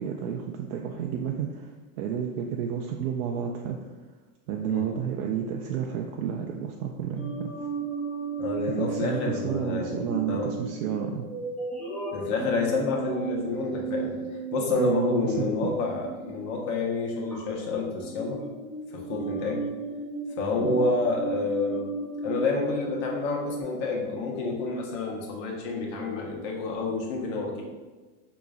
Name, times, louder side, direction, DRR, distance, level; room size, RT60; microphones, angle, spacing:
voice 1, 0.0-4.0 4.5-7.6 8.8-11.3 14.7-15.7 20.6-20.9, right 8 dB, 75° right, 1 dB, 0.5 m, -31 dB
sound 1, 7.1-16.5 17.3-17.6 18.0-23.6, right 4 dB, 5° left, 0.4 m, -35 dB
voice 2, 8.4-10.5 12.1-14.2 14.5-18.4 18.9-19.7 20.4-21.8 22.2-27.6, left 3 dB, 55° left, -1 dB, 1.0 m, -29 dB
4.9 x 2.9 x 2.4 m, 1.3 s
supercardioid pair, 150°, 44 cm